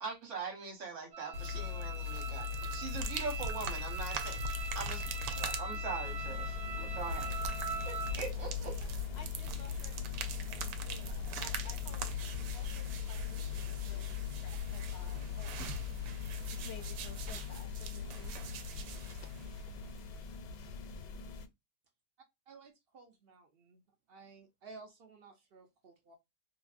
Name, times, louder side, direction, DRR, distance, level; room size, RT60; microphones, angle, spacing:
voice 1, 0.0-7.4 7.9-8.8, right 5 dB, 50° right, 1.2 m, -42 dB
sound 1, 1.1-8.2, right 5 dB, 30° right, 0.8 m, -42 dB
sound 2, 1.3-20.2, left 4 dB, 90° right, 1.2 m, -39 dB
sound 3, 6.0-21.5, left 3 dB, 85° left, 1.2 m, -46 dB
voice 2, 9.0-12.1 12.5-15.8 16.1-18.9, left 5 dB, 70° left, 0.6 m, -55 dB
voice 3, 22.5-23.8 24.1-26.1, right 4 dB, 70° right, 0.5 m, -55 dB
2.9 x 2.6 x 2.4 m
omnidirectional pair, 1.8 m